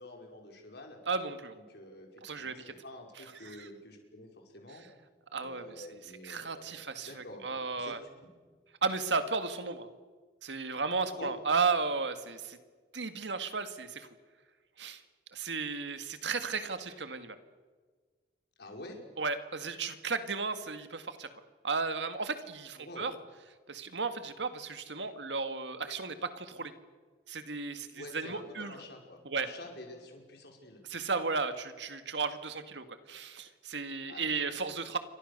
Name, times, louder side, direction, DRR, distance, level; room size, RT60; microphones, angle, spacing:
voice 1, 0.0-1.0 1.5-4.3 4.5-4.9 5.3-6.7 7.0-7.9 8.2-8.3 11.1-11.3 18.6-19.0 22.8-23.1 27.9-30.8 34.1-34.6, left 1 dB, 65° left, 2 dB, 5.5 m, -48 dB
voice 2, 1.1-1.6 2.2-2.6 3.4-3.7 5.3-5.9 6.2-8.0 8.8-9.9 10.4-12.6 12.9-14.1 14.8-15.0 15.3-17.4 19.2-21.3 21.6-23.1 23.7-26.7 27.3-28.7 29.3-29.5 30.9-35.0, right 4 dB, 80° right, 9 dB, 2.1 m, -34 dB
29.0 x 24.5 x 6.8 m, 1.5 s
head